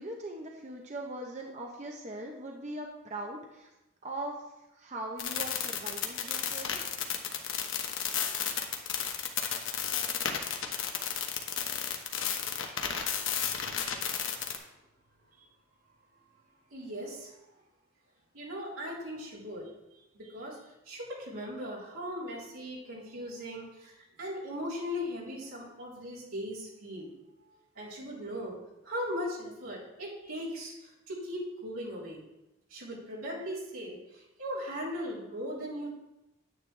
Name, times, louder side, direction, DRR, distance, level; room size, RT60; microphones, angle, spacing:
voice 1, 0.0-3.7 4.0-4.4 4.7-6.8, right 1 dB, 35° right, 1 dB, 0.8 m, -40 dB
sound 1, 5.2-14.6, left 8 dB, 65° left, 1.1 m, -32 dB
voice 2, 16.7-17.3 18.3-19.7 20.1-20.6 20.9-27.1 27.8-28.5 28.8-32.2 32.7-35.9, equal, 80° right, -6 dB, 3.7 m, -38 dB
9.4 x 9.4 x 3.3 m, 0.94 s
head